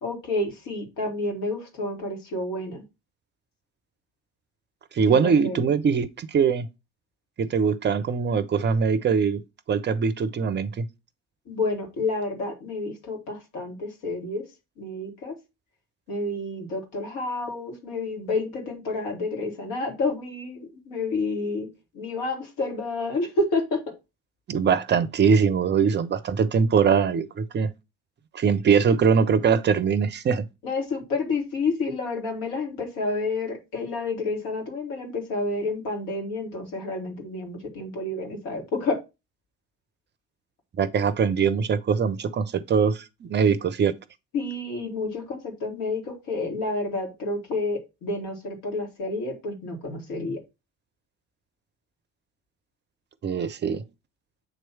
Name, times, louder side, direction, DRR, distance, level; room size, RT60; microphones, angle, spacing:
voice 1, 0.0-2.8 5.1-5.7 11.5-14.4 14.8-15.3 16.1-23.9 30.6-39.0 44.3-50.4, left 2 dB, 55° left, 2.2 m, -29 dB
voice 2, 4.9-6.7 7.4-9.4 9.7-10.8 24.5-27.7 28.3-30.4 40.8-43.9 53.2-53.8, right 6 dB, 25° right, 0.7 m, -22 dB
7.8 x 3.1 x 4.5 m
figure-of-eight pair, 55°, 39 cm